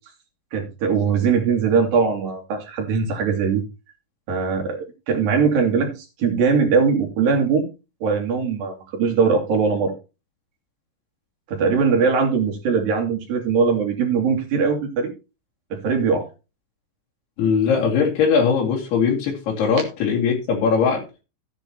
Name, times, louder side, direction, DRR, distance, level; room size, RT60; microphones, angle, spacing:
voice 1, 0.5-3.6 4.3-5.9 6.2-7.7 8.0-9.9 11.5-15.1 15.7-16.3, right 5 dB, 65° right, 3 dB, 4.3 m, -21 dB
voice 2, 17.4-21.0, left 6 dB, 90° left, -2 dB, 4.6 m, -20 dB
14.0 x 10.0 x 2.9 m, 0.30 s
omnidirectional pair, 4.5 m